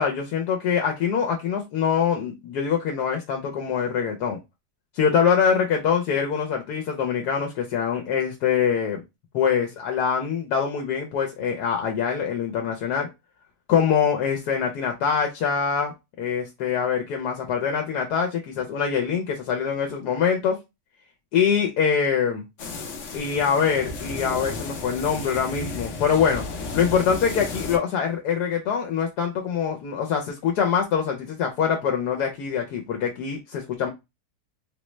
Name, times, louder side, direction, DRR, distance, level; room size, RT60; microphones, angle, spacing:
voice 1, 0.0-4.4 4.9-9.0 9.3-13.1 13.7-20.6 21.3-22.4 23.1-26.4 26.7-33.9, left 7 dB, 85° left, 2 dB, 1.2 m, -24 dB
sound 1, 22.6-27.8, left 3 dB, 60° left, 0.9 m, -33 dB
3.8 x 2.1 x 3.0 m, 0.23 s
omnidirectional pair, 1.7 m